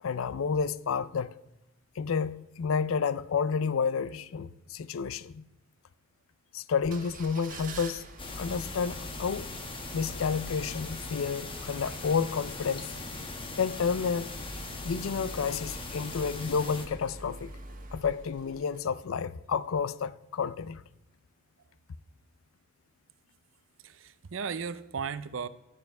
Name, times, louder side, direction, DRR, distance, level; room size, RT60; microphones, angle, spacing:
voice 1, 0.0-1.3 2.0-5.4 6.5-8.0 8.4-9.5 9.9-12.9 13.6-14.3 14.8-17.5 17.9-20.8, left 6 dB, 80° left, 0.4 m, -30 dB
sound 1, 6.8-19.3 19.7-19.8, right 2 dB, 40° right, 1.5 m, -47 dB
sound 2, 8.2-16.9, left 3 dB, 25° left, 1.1 m, -40 dB
voice 2, 23.8-25.5, right 6 dB, 70° right, 0.6 m, -35 dB
11.0 x 7.0 x 5.3 m
head